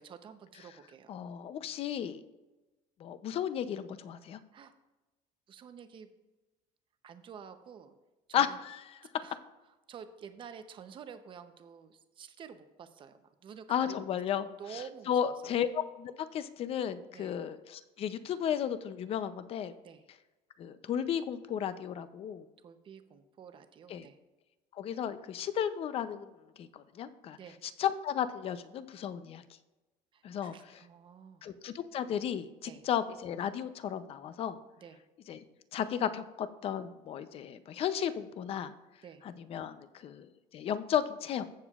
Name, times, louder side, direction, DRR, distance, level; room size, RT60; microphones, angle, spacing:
voice 1, 0.0-1.2 4.5-4.7 5.5-6.1 7.0-7.9 8.3-8.6 9.2-9.4 9.9-14.0 14.3-15.5 17.1-17.4 19.8-20.0 22.6-24.2 27.3-27.6 30.1-31.5 32.6-32.8 34.8-35.0 39.0-39.2, right 7 dB, 35° right, 9 dB, 0.8 m, -50 dB
voice 2, 1.1-2.2 3.0-4.4 8.3-9.1 13.7-19.7 20.6-22.4 23.9-24.1 24.7-26.3 26.6-27.4 27.6-29.4 30.2-30.8 31.4-34.6 35.3-35.4 35.7-38.7 39.2-41.4, left 9 dB, 40° left, 12 dB, 0.6 m, -34 dB
15.0 x 7.0 x 2.4 m, 1.1 s
cardioid pair, 150°, 15 cm